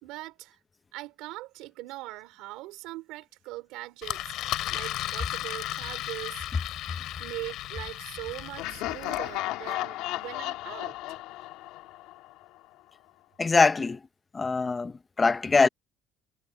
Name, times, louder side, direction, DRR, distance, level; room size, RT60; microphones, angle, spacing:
voice 1, 0.0-0.6 0.9-6.5 7.2-11.0, right 19 dB, 85° right, 4.0 m, -41 dB
Engine, 4.0-9.3, left 14 dB, 60° left, 4.5 m, -35 dB
Laughter, 8.6-12.4, left 17 dB, 85° left, 2.7 m, -34 dB
voice 2, 13.4-14.0 14.3-15.7, left 4 dB, 15° left, 0.8 m, -23 dB
cardioid pair, 170°, 0 cm